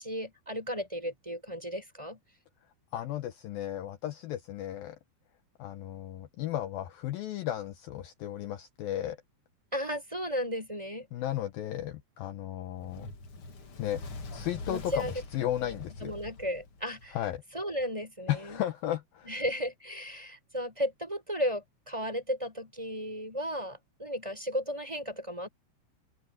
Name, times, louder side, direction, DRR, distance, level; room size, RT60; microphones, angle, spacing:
voice 1, 0.0-2.2 9.7-11.1 14.7-15.1 15.6-15.8 16.0-17.2 17.5-18.6 19.2-25.5, equal, 5° right, 5.9 m, -34 dB
voice 2, 2.9-5.0 5.6-9.2 11.1-13.1 13.8-14.0 14.3-16.1 17.1-17.4 18.3-19.4, left 12 dB, 75° left, 2.5 m, -34 dB
Fire, 12.8-17.3, left 3 dB, 40° left, 2.3 m, -43 dB
open air
omnidirectional pair, 4.8 m